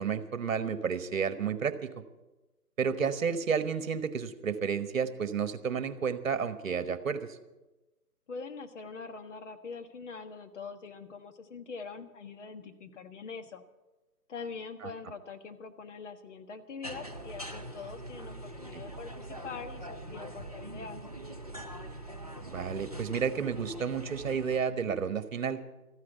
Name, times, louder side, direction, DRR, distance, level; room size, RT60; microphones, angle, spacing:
voice 1, 0.0-1.9 2.8-7.3 14.8-14.9 18.7-18.8 22.4-25.6, right 6 dB, 55° right, 12 dB, 1.3 m, -31 dB
voice 2, 8.3-13.6 14.3-21.0, left 5 dB, 50° left, 7 dB, 1.5 m, -43 dB
sound 1, 16.8-24.6, right 1 dB, 25° right, 0.4 m, -43 dB
14.0 x 9.7 x 8.0 m, 1.1 s
figure-of-eight pair, 145°, 47 cm